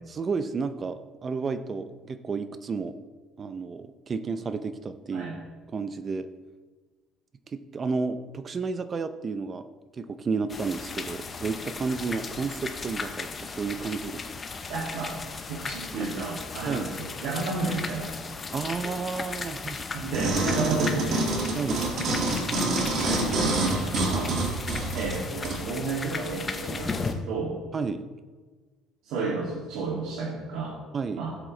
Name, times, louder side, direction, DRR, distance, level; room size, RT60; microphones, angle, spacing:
voice 1, 0.1-3.0 3.4-5.3 5.7-6.3 7.5-9.7 9.9-14.3 16.6-16.9 18.5-19.9 21.5-21.8 27.7-28.1 30.9-31.2, right 4 dB, 25° right, 11 dB, 0.6 m, -31 dB
sound 1, 10.5-27.1, left 4 dB, 20° left, 0.7 m, -36 dB
voice 2, 14.7-15.1 15.5-18.1 19.9-21.3 23.0-24.4 24.9-27.5 29.0-30.7 31.1-31.3, right 3 dB, 75° right, -5 dB, 2.3 m, -32 dB
sound 2, 20.1-25.6 26.2-26.3, right 2 dB, 45° right, 1.9 m, -27 dB
16.5 x 7.9 x 3.2 m, 1.4 s
cardioid pair, 160°, 0 cm